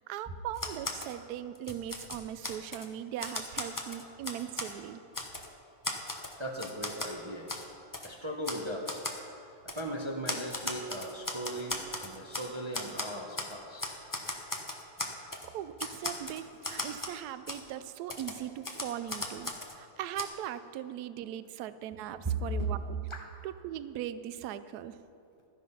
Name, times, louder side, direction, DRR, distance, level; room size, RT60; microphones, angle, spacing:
voice 1, 0.0-5.0 15.5-23.1 23.4-25.0, right 11 dB, 70° right, 13 dB, 0.9 m, -39 dB
Typewriter, 0.6-1.1 1.6-2.9 3.2-4.7 5.1-5.5 5.8-7.1 7.5-7.6 7.9-8.1 8.4-8.6 8.9-9.2 9.7-9.8 10.3-12.5 12.7-13.5 13.8-15.5 15.8-17.2 17.5-17.6 18.1-19.8 20.2-20.3, left 2 dB, 25° left, 0.4 m, -37 dB
voice 2, 6.4-7.5 8.0-9.0 9.4-13.9 22.2-22.3 22.6-22.7 23.1-23.2, right 2 dB, 35° right, 1 dB, 0.4 m, -37 dB
13.0 x 10.0 x 5.7 m, 2.7 s
omnidirectional pair, 2.1 m